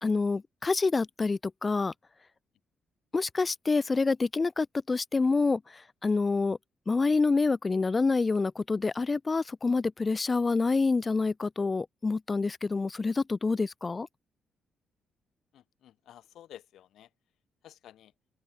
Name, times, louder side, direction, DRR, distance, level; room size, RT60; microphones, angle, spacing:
voice 1, 0.0-1.9 3.1-6.6 6.9-14.1, left 4 dB, 25° left, 0.6 m, -27 dB
voice 2, 15.5-17.1 17.6-18.1, left 11 dB, 75° left, 1.9 m, -52 dB
open air
cardioid pair, 125°, 0 cm